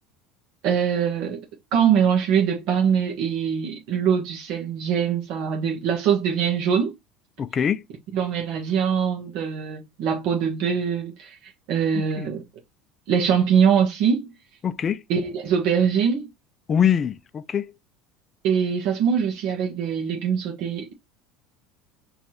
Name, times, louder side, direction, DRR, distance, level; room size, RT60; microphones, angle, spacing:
voice 1, 0.6-1.4 1.7-6.9 8.1-11.4 11.7-12.4 13.1-14.3 15.1-16.3 18.4-20.9, right 7 dB, 60° right, 1.3 m, -23 dB
voice 2, 7.4-7.8 11.9-12.3 14.6-15.0 16.7-17.7, left 8 dB, 30° left, 0.4 m, -23 dB
4.6 x 3.1 x 2.9 m
supercardioid pair, 140°, 0 cm